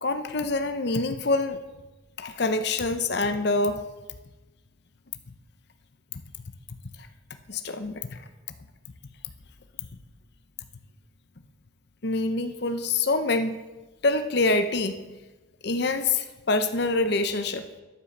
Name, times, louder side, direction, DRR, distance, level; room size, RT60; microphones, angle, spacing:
voice 1, 0.0-1.6 2.2-3.8 7.5-8.2 12.0-13.6 14.0-15.0 15.6-17.6, left 3 dB, 55° left, 8 dB, 0.7 m, -25 dB
9.8 x 7.6 x 7.1 m, 1.2 s
head